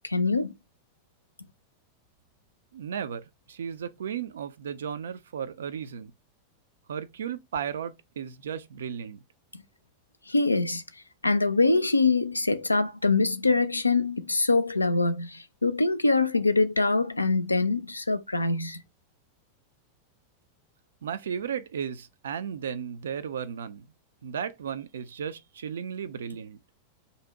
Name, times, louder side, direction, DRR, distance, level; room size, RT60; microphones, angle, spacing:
voice 1, 0.0-0.5 9.5-9.6 10.3-10.8 11.2-18.8, left 3 dB, 85° left, 0.3 m, -24 dB
voice 2, 2.7-6.1 6.9-9.2 21.0-23.9 24.2-26.6, right 8 dB, 65° right, 0.3 m, -35 dB
2.6 x 2.0 x 3.6 m
figure-of-eight pair, 90°, 0 cm